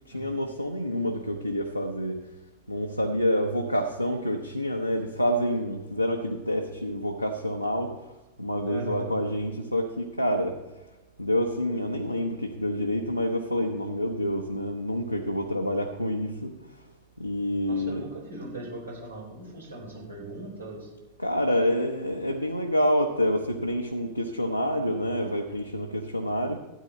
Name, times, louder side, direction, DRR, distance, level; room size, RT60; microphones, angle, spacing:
voice 1, 0.1-2.2 2.7-8.1 8.4-10.6 11.2-16.8 17.2-18.1 21.2-26.6, equal, 90° left, 2 dB, 0.8 m, -28 dB
voice 2, 8.6-9.1 17.6-20.9, right 2 dB, 80° right, -3 dB, 4.3 m, -39 dB
13.0 x 9.0 x 4.0 m, 1.0 s
figure-of-eight pair, 90°, 0 cm